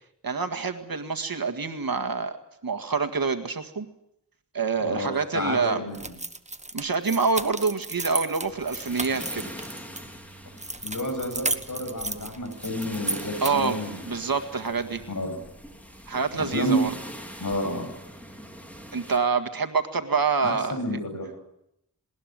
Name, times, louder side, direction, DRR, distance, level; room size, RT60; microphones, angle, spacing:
voice 1, 0.2-2.4 2.6-3.9 4.5-5.8 6.7-9.5 13.4-13.8 14.1-15.0 16.1-16.9 18.9-21.0, right 4 dB, 85° right, 7 dB, 1.9 m, -26 dB
voice 2, 5.3-6.0 10.8-14.0 15.1-15.4 16.4-16.8 17.4-17.9 20.4-21.3, equal, 60° left, 4 dB, 7.7 m, -30 dB
sound 1, 5.9-10.0 10.6-13.8, right 2 dB, 20° right, 1.4 m, -33 dB
sound 2, 8.4-19.2, equal, 5° left, 4.6 m, -43 dB
20.0 x 20.0 x 9.2 m, 0.80 s
wide cardioid pair, 65°, 34 cm